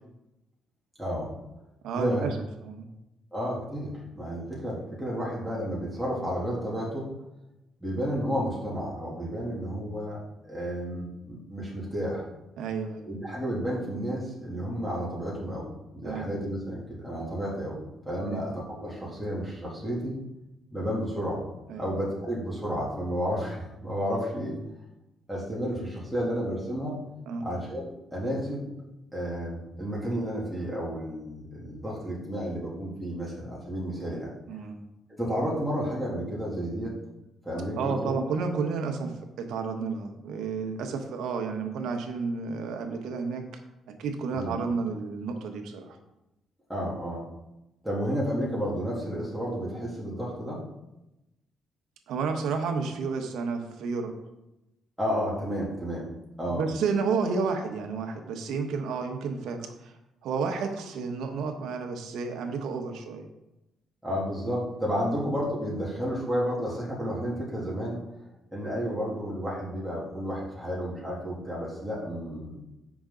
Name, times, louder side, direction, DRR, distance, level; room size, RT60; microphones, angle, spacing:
voice 1, 1.0-1.3 2.0-2.3 3.3-7.1 7.8-12.3 13.1-17.8 18.0-20.2 20.7-21.4 21.8-24.6 25.3-27.0 27.4-28.6 29.1-34.3 35.1-36.9 37.4-38.2 44.3-44.5 46.7-47.3 47.8-50.6 55.0-56.1 56.4-56.6 64.0-68.0 68.5-72.6, equal, ahead, -6 dB, 2.9 m, -31 dB
voice 2, 1.8-2.3 2.6-2.9 12.6-13.1 16.0-16.3 18.2-18.4 21.7-21.8 27.3-27.5 34.5-34.8 37.8-43.4 44.0-46.0 52.1-54.1 56.5-59.9 60.2-63.2 65.1-65.2, right 5 dB, 85° right, 5 dB, 1.1 m, -31 dB
8.2 x 6.1 x 3.9 m, 0.92 s
cardioid pair, 90°, 0 cm